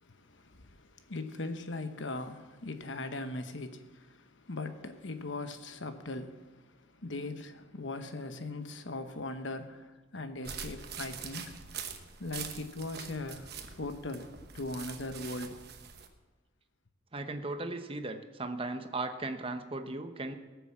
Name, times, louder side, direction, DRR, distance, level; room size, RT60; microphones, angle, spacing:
voice 1, 0.0-11.6 12.2-14.3 14.5-15.6, left 2 dB, 65° left, 1.1 m, -40 dB
sound 1, 10.4-16.1, right 7 dB, 55° right, 1.2 m, -44 dB
voice 2, 17.1-20.3, right 2 dB, 30° right, 0.9 m, -37 dB
18.5 x 7.0 x 7.4 m
head